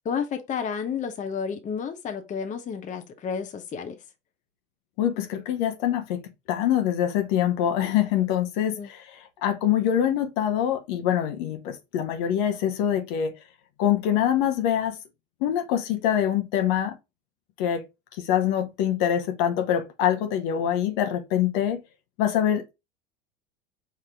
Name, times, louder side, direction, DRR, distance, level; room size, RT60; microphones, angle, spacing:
voice 1, 0.0-3.9 8.8-8.9, left 6 dB, 25° left, 0.8 m, -31 dB
voice 2, 5.0-6.2 6.5-9.0 9.4-13.3 13.8-15.0 15.4-17.0 17.6-17.8 18.2-21.8 22.2-22.7, left 10 dB, 55° left, 0.9 m, -24 dB
5.0 x 2.9 x 3.5 m
figure-of-eight pair, 80°, 30 cm